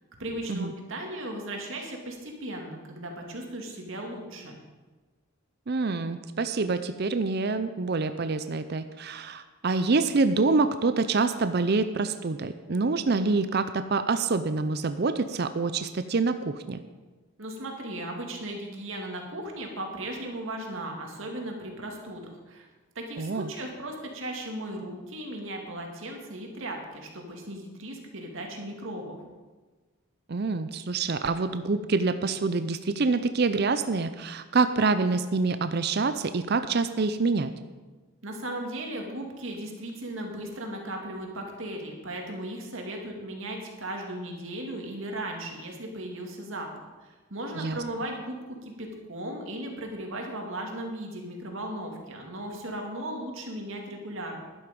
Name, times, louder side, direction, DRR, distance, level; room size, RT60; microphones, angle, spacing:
voice 1, 0.2-4.6 17.4-22.7 23.0-29.2 38.2-46.7 47.0-54.4, right 1 dB, 65° right, 1 dB, 2.3 m, -36 dB
voice 2, 5.7-16.8 23.2-23.5 30.3-37.5 47.6-47.8, right 3 dB, 45° right, 10 dB, 0.5 m, -26 dB
11.5 x 11.5 x 5.3 m, 1.3 s
head